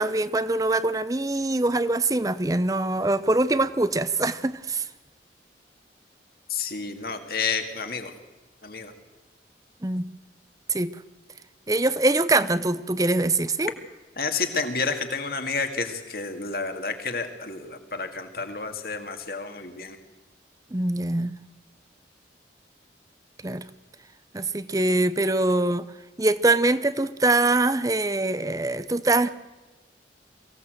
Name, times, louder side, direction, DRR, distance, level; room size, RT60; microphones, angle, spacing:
voice 1, 0.0-4.8 9.8-10.1 10.7-10.9 11.7-13.7 20.7-21.4 23.4-23.6 24.3-25.9 26.2-29.3, right 2 dB, 20° right, 0.7 m, -23 dB
voice 2, 6.5-8.1 8.6-8.9 14.2-20.0, left 4 dB, 55° left, 2.2 m, -30 dB
23.5 x 17.0 x 7.9 m
head